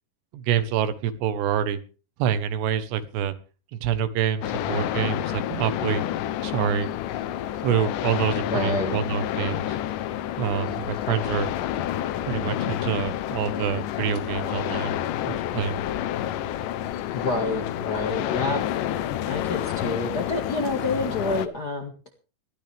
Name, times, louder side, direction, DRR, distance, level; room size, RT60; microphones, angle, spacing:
voice 1, 0.3-1.8 2.2-3.3 3.7-6.0 6.4-6.9 7.6-9.8 10.4-11.5 12.3-15.0 15.3-15.8, right 9 dB, 90° right, 12 dB, 3.4 m, -26 dB
sound 1, 4.4-21.5, left 12 dB, 75° left, 2.0 m, -29 dB
voice 2, 8.4-9.0 17.1-18.6 19.2-21.9, left 2 dB, 40° left, 2 dB, 1.5 m, -28 dB
20.0 x 14.0 x 3.5 m, 0.35 s
omnidirectional pair, 4.7 m